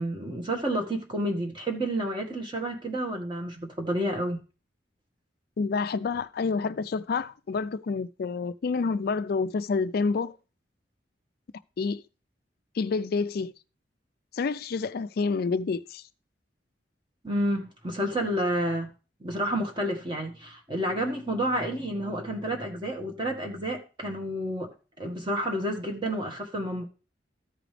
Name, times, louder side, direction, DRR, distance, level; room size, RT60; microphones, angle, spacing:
voice 1, 0.0-4.4 17.2-18.9 19.2-24.7 25.0-26.8, right 1 dB, 30° right, 1.5 m, -30 dB
voice 2, 5.6-10.4 11.8-12.0 12.7-13.5 14.3-16.1, left 4 dB, 60° left, 0.4 m, -28 dB
13.5 x 5.0 x 3.3 m
head